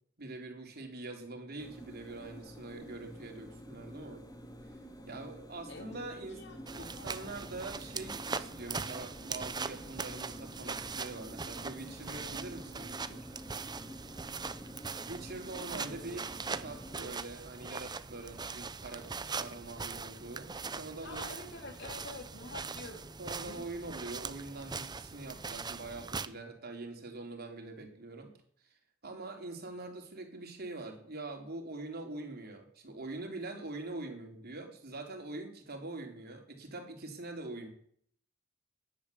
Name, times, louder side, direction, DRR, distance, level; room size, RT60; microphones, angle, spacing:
voice 1, 0.2-4.2 5.1-6.4 6.8-13.3 15.1-19.1 19.3-21.2 23.2-28.3 29.0-37.7, right 2 dB, 50° right, 3 dB, 3.7 m, -44 dB
sound 1, 1.6-17.1, equal, 20° left, 2.6 m, -49 dB
voice 2, 5.7-7.3 15.7-16.2 16.9-17.1 21.0-23.1 23.4-23.7, left 2 dB, 60° left, 4 dB, 3.4 m, -48 dB
sound 2, 6.7-26.3, right 4 dB, 20° right, 0.7 m, -41 dB
19.0 x 11.0 x 7.1 m, 0.63 s
head